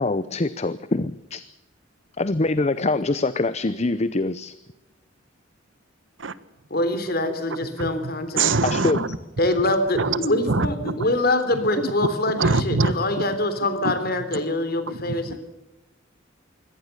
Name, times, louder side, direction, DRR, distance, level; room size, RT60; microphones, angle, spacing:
voice 1, 0.0-1.4 2.2-4.5 8.6-9.0, left 2 dB, 35° left, 15 dB, 0.7 m, -24 dB
voice 2, 6.7-8.5 9.4-15.4, left 1 dB, 50° left, 10 dB, 3.4 m, -24 dB
voice 3, 8.4-9.1 10.0-10.2 10.5-10.9 12.4-12.9 14.9-15.0 15.3-15.4, right 3 dB, 75° right, 15 dB, 1.3 m, -22 dB
24.0 x 17.5 x 6.8 m, 1.0 s
head